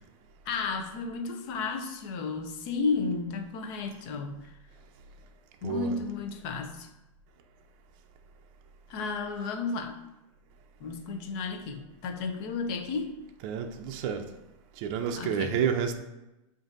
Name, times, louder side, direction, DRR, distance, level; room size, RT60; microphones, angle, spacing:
voice 1, 0.5-4.6 5.6-6.9 8.9-10.0 10.8-13.2 15.2-15.5, left 4 dB, 45° left, 0.7 m, -33 dB
voice 2, 5.6-6.0 13.4-14.3 14.8-16.0, right 7 dB, 45° right, 0.5 m, -30 dB
7.5 x 2.6 x 2.5 m
hypercardioid pair, 140°, 17 cm